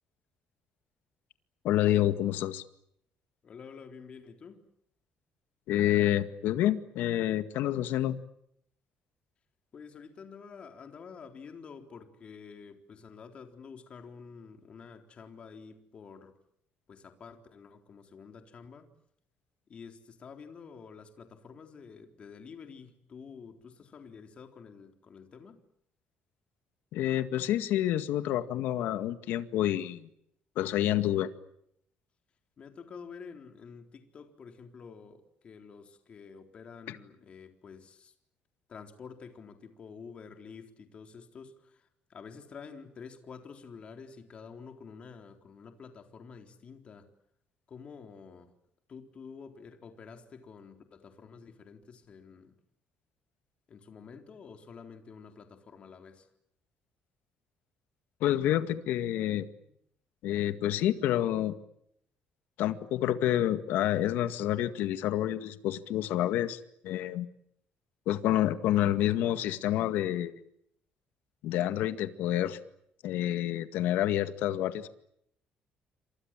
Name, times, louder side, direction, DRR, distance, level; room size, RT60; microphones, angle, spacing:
voice 1, 1.6-2.6 5.7-8.1 26.9-30.1 30.6-31.3 36.9-37.0 58.2-59.5 60.2-61.5 62.6-67.3 68.1-70.4 71.4-72.6 73.0-74.9, left 12 dB, 80° left, 2.0 m, -28 dB
voice 2, 3.4-4.6 9.7-16.3 16.9-18.9 19.7-25.6 32.6-38.1 38.7-47.1 47.7-48.5 48.9-52.6 53.7-56.3, left 5 dB, 35° left, 3.9 m, -49 dB
29.0 x 26.0 x 7.6 m
cardioid pair, 150°, 3 cm